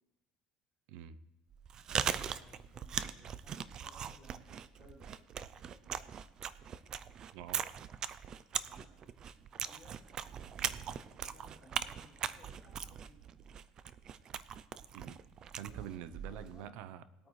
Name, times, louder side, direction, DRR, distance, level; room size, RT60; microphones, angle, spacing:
Chewing mastication, 1.5-16.6, right 8 dB, 30° right, 0.4 m, -40 dB
voice 1, 1.9-5.1 5.5-6.0 8.6-9.0 9.7-10.1 11.0-13.2 15.7-15.9 16.3-16.7 17.2-17.3, left 1 dB, 15° left, -8 dB, 3.9 m, -61 dB
voice 2, 7.3-7.7 14.9-15.2 15.6-17.0, right 10 dB, 70° right, 15 dB, 0.6 m, -46 dB
19.5 x 8.8 x 3.2 m, 1.1 s
cardioid pair, 170°, 2 cm